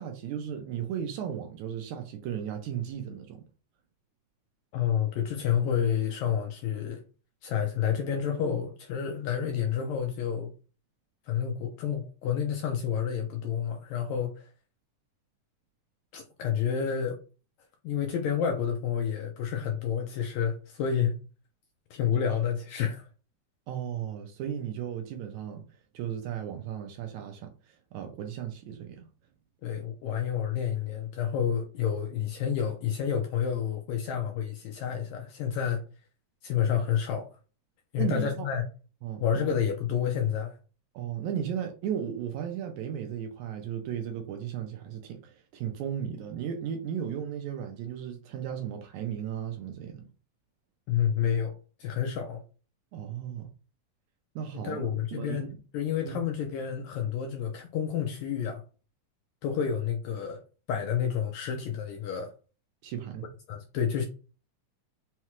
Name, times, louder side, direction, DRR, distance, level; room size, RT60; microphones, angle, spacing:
voice 1, 0.0-3.4 23.7-25.7 25.9-29.1 38.0-38.5 39.0-39.4 40.9-50.1 52.9-53.5 54.4-55.6 56.0-56.2 62.8-63.3, right 9 dB, 80° right, 1.8 m, -35 dB
voice 2, 4.7-7.0 7.4-10.5 11.3-14.5 16.1-17.2 17.8-21.2 21.9-23.1 29.6-35.8 36.4-37.3 37.9-38.7 39.2-40.6 50.9-51.5 51.8-52.4 54.5-58.6 59.4-60.4 60.7-62.3 63.5-64.1, left 8 dB, 80° left, 1.7 m, -29 dB
5.6 x 2.2 x 3.0 m
omnidirectional pair, 3.7 m